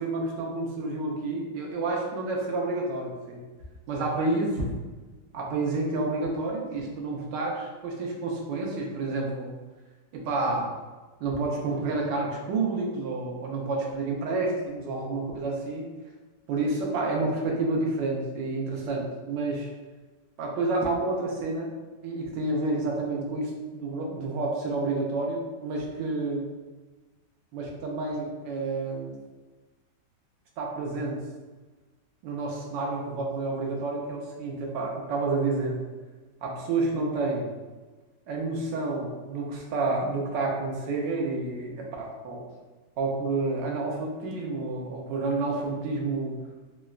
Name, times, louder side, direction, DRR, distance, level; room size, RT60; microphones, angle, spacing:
voice 1, 0.0-3.4 3.9-4.6 5.3-9.5 10.1-10.7 11.2-15.9 16.5-19.7 20.4-21.7 22.0-26.5 27.5-29.2 30.6-31.2 32.2-35.8 36.4-37.5 38.3-42.4 43.0-46.4, right 3 dB, 80° right, -1 dB, 1.3 m, -29 dB
3.7 x 2.1 x 2.3 m, 1.2 s
omnidirectional pair, 1.9 m